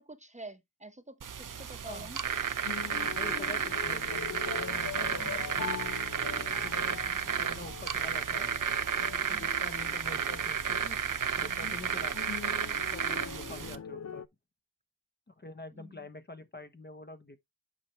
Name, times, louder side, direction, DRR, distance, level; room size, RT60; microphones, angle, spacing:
voice 1, 0.0-2.4 4.9-5.5 9.3-9.6 15.7-16.1, right 2 dB, 20° right, 1.0 m, -49 dB
sound 1, 1.2-13.8, right 7 dB, 60° right, 0.8 m, -32 dB
sound 2, 2.7-14.3, left 7 dB, 45° left, 0.5 m, -43 dB
voice 2, 3.1-5.6 6.6-8.5 9.0-11.0 11.3-12.3 12.7-14.2 15.3-17.4, left 2 dB, 30° left, 0.9 m, -46 dB
8.4 x 5.8 x 3.1 m
wide cardioid pair, 90°, 36 cm